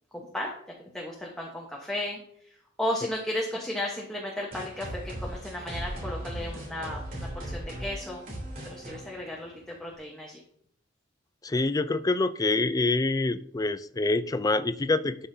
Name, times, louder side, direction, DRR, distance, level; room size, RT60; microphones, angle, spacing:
voice 1, 0.1-0.5 0.9-8.2 8.7-9.5 9.8-10.4, left 1 dB, 5° left, -2 dB, 1.1 m, -34 dB
sound 1, 4.5-10.0, right 1 dB, 45° right, 3.2 m, -38 dB
voice 2, 11.4-15.3, left 2 dB, 20° left, 12 dB, 0.4 m, -26 dB
12.0 x 5.6 x 2.7 m, 0.66 s
head